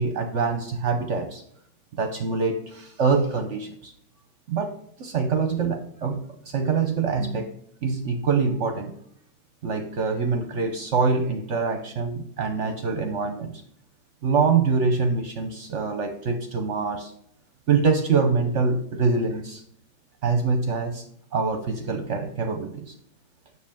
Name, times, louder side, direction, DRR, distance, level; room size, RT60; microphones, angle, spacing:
voice 1, 0.0-1.4 1.9-3.9 4.5-4.7 5.0-6.2 6.5-7.5 7.8-8.9 9.6-13.6 14.2-17.1 17.7-19.6 20.2-21.0 21.3-22.9, right 4 dB, 55° right, 5 dB, 0.9 m, -24 dB
7.2 x 6.4 x 3.6 m, 0.69 s
omnidirectional pair, 1.8 m